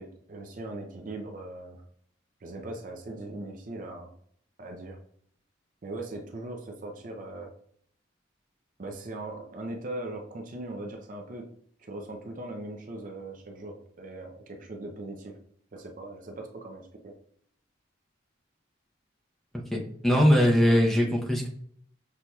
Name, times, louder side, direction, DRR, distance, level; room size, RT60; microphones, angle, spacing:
voice 1, 0.0-1.8 2.4-4.1 4.6-5.0 5.8-7.5 8.8-11.5 11.8-15.3 15.7-17.1 20.3-21.1, right 2 dB, 45° right, 2 dB, 0.5 m, -40 dB
voice 2, 19.7-21.5, equal, ahead, -2 dB, 0.6 m, -21 dB
6.1 x 2.7 x 2.3 m, 0.64 s
head